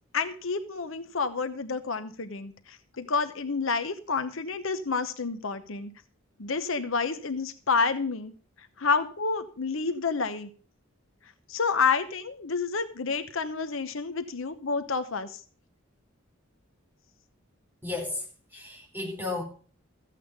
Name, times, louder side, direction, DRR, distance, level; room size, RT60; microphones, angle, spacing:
voice 1, 0.1-5.9 6.4-8.3 8.8-10.5 11.5-15.4, left 4 dB, 70° left, 9 dB, 0.9 m, -29 dB
voice 2, 17.8-18.2 18.5-19.4, left 3 dB, 10° right, -2 dB, 4.8 m, -33 dB
14.5 x 8.5 x 5.2 m, 0.41 s
head